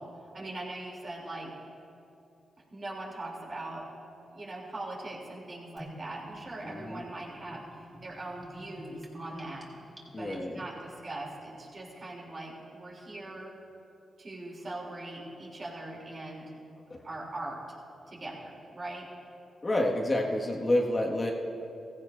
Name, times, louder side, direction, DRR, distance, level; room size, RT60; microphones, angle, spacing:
voice 1, 0.0-1.5 2.7-3.9 4.3-7.7 8.0-9.7 10.2-13.5 14.2-16.5 17.0-17.6 18.1-19.1, right 2 dB, 50° right, -3 dB, 3.1 m, -41 dB
Gurgling / Bathtub (filling or washing), 5.8-10.8, equal, 20° right, 3.0 m, -49 dB
voice 2, 6.6-7.0 10.1-10.6 16.9-17.0 19.6-21.3, left 1 dB, 35° left, -1 dB, 1.8 m, -29 dB
16.0 x 15.0 x 2.6 m, 2.8 s
supercardioid pair, 45°, 0 cm